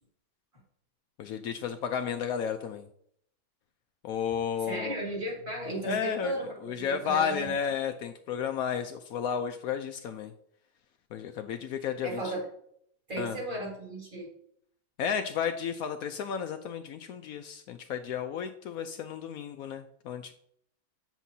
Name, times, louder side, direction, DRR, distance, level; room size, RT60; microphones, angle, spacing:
voice 1, 1.2-2.9 4.0-5.0 5.8-6.3 6.6-10.3 11.1-12.3 13.2-13.4 15.0-20.3, left 7 dB, 80° left, 6 dB, 0.8 m, -32 dB
voice 2, 4.6-7.7 12.0-12.5 13.1-14.3, right 1 dB, 25° right, -3 dB, 2.6 m, -35 dB
8.1 x 7.4 x 2.8 m, 0.67 s
omnidirectional pair, 2.1 m